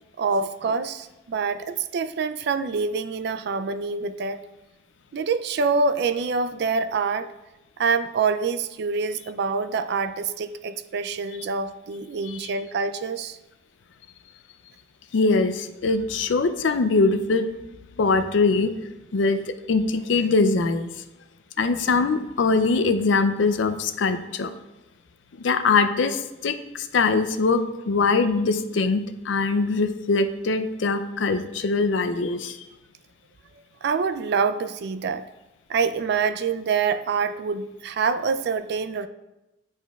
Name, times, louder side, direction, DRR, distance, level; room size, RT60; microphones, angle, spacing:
voice 1, 0.2-4.4 5.1-7.3 7.8-13.4 33.8-35.2 35.7-39.1, right 5 dB, 55° right, 10 dB, 0.3 m, -26 dB
voice 2, 15.1-17.5 18.0-18.7 19.1-20.9 21.6-24.5 25.4-32.6, left 3 dB, 70° left, 10 dB, 0.4 m, -22 dB
9.9 x 4.4 x 2.3 m, 0.99 s
head